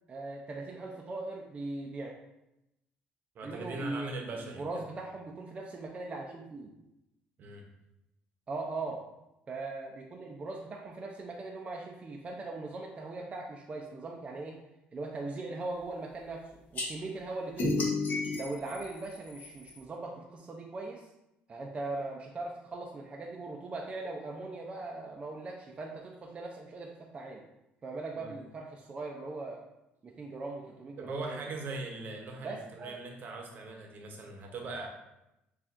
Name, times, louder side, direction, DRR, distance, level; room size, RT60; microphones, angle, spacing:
voice 1, 0.1-2.1 3.4-4.3 4.6-6.7 8.5-9.0 9.5-14.6 14.9-17.9 18.4-21.1 21.5-27.4 27.8-29.6 30.0-31.4 32.4-33.0, right 3 dB, 30° right, 0 dB, 0.5 m, -40 dB
voice 2, 3.3-4.9 7.4-7.6 28.1-28.3 31.0-34.9, right 2 dB, 55° right, 2 dB, 0.8 m, -40 dB
sound 1, 16.8-16.9 17.6-19.8, left 2 dB, 45° left, 1.2 m, -32 dB
6.9 x 2.5 x 2.5 m, 0.90 s
cardioid pair, 100°, 4 cm